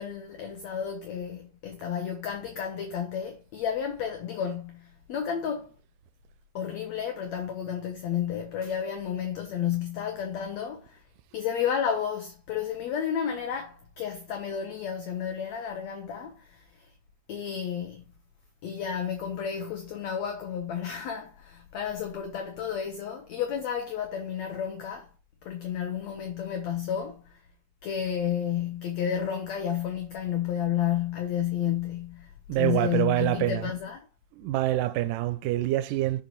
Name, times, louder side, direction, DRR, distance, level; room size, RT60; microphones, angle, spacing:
voice 1, 0.0-5.7 6.5-11.0 11.3-16.9 17.3-18.0 18.6-25.1 25.4-27.4 27.8-32.3 32.6-34.0, left 8 dB, 70° left, 1.7 m, -31 dB
voice 2, 32.5-33.7 34.3-36.2, right 15 dB, 85° right, 2.2 m, -26 dB
6.7 x 5.6 x 4.5 m
omnidirectional pair, 3.9 m